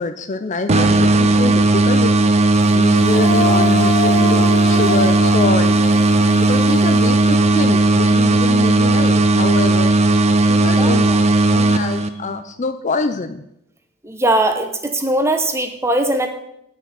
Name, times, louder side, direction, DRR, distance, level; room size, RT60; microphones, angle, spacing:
voice 1, 0.0-5.8 6.2-10.0 10.4-11.1 11.5-13.4, left 3 dB, 35° left, 9 dB, 0.5 m, -25 dB
sound 1, 0.7-12.4, right 2 dB, 30° right, 0.5 m, -15 dB
Female singing, 2.8-8.0, left 2 dB, 55° left, 1.8 m, -26 dB
voice 2, 10.8-11.2 14.0-16.3, right 1 dB, 15° right, 6 dB, 0.9 m, -20 dB
9.0 x 6.3 x 6.6 m, 0.78 s
head